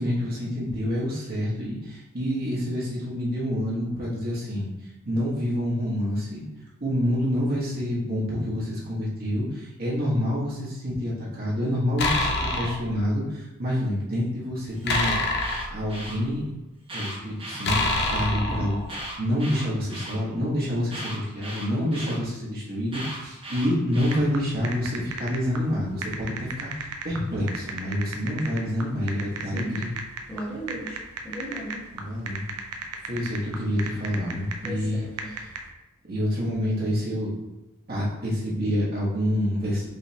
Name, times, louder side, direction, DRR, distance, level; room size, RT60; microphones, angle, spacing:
voice 1, 0.0-4.7 5.0-6.4 6.8-15.4 15.7-16.4 16.9-30.0 31.9-32.4 33.0-35.0 36.1-37.3 37.9-39.9, equal, 45° right, -7 dB, 1.4 m, -27 dB
sound 1, 12.0-12.9 14.9-16.4 17.6-19.1, left 2 dB, 50° left, 0.7 m, -26 dB
Alarm, 14.7-16.2 16.8-18.2 18.8-20.2 20.9-22.2 22.9-24.2, right 1 dB, 25° right, 1.0 m, -37 dB
sound 2, 23.9-35.7, right 4 dB, 80° right, 0.6 m, -36 dB
voice 2, 30.3-31.0 31.2-31.8 34.6-35.3, equal, 5° left, -9 dB, 1.4 m, -36 dB
5.1 x 3.6 x 2.8 m, 0.96 s
head